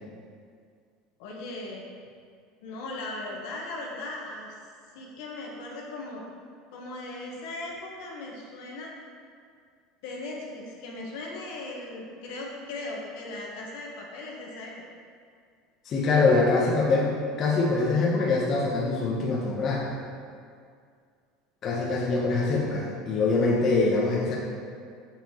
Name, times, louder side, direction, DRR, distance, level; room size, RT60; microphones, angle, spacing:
voice 1, 1.2-1.9 2.6-4.6 4.9-6.3 6.7-8.9 10.0-14.7, left 2 dB, 70° left, -2 dB, 1.2 m, -38 dB
voice 2, 15.9-17.1 17.4-19.8 21.6-24.4, left 3 dB, 40° left, -3 dB, 0.8 m, -24 dB
6.7 x 5.7 x 3.0 m, 2.2 s
supercardioid pair, 125°, 0 cm